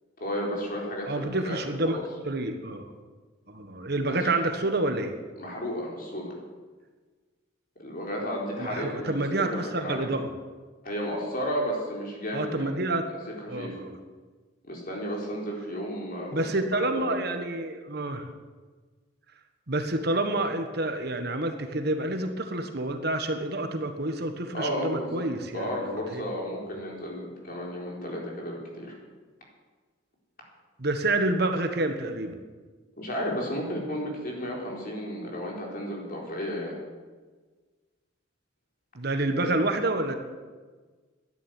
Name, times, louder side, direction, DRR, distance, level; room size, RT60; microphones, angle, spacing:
voice 1, 0.2-1.6 1.8-2.1 4.1-4.5 5.4-6.3 7.8-10.1 10.8-12.7 13.1-13.8 14.6-16.4 16.9-17.2 24.5-25.3 25.5-28.9 33.0-36.8, equal, 45° left, -1 dB, 4.2 m, -33 dB
voice 2, 1.1-2.0 2.2-2.9 3.5-5.1 8.6-10.3 12.3-13.1 13.5-14.0 16.3-18.3 19.7-26.2 30.8-32.4 38.9-40.2, right 2 dB, 55° right, 6 dB, 1.4 m, -28 dB
12.5 x 10.0 x 9.5 m, 1.4 s
head